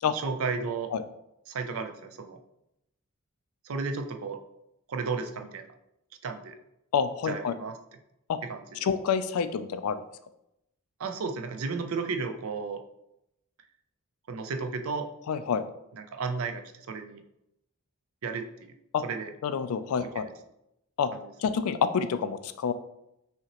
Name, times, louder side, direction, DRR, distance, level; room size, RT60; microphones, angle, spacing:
voice 1, 0.1-0.9 1.5-2.4 3.6-4.4 4.9-5.7 6.2-6.5 7.2-7.8 8.5-8.6 11.0-12.8 14.3-15.1 15.9-17.2 18.2-18.7 19.0-19.3 21.1-21.3, right 4 dB, 70° right, 7 dB, 0.5 m, -33 dB
voice 2, 6.9-7.6 8.3-8.4 8.8-10.0 15.3-15.6 18.9-19.0 19.4-20.3 21.0-21.1 21.4-22.7, left 6 dB, 80° left, 11 dB, 0.3 m, -28 dB
5.6 x 2.9 x 2.9 m, 0.83 s
head